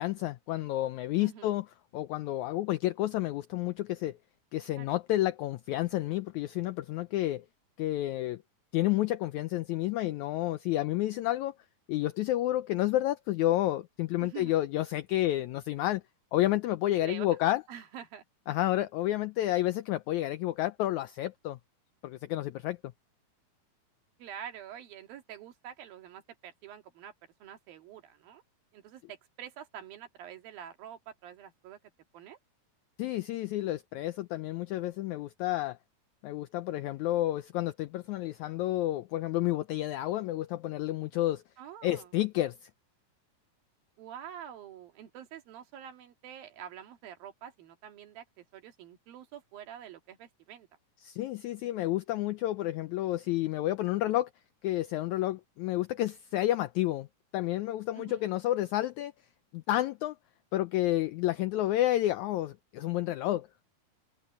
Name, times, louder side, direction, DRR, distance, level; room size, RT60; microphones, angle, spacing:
voice 1, 0.0-1.6 1.9-4.2 4.5-7.4 7.8-8.4 8.7-11.5 11.9-16.0 16.3-17.6 18.5-21.6 22.0-22.8 33.0-35.8 36.2-41.4 41.8-42.5 51.0-54.3 54.6-57.1 57.3-59.1 59.5-60.1 60.5-63.5, left 15 dB, 90° left, 1.6 m, -30 dB
voice 2, 1.2-1.6 4.8-5.0 14.2-14.6 17.0-17.3 17.7-18.2 24.2-27.1 27.4-28.4 28.7-31.8 32.1-32.4 41.6-42.1 44.0-50.7 57.9-58.3, right 9 dB, 90° right, 3.7 m, -47 dB
omnidirectional pair, 4.0 m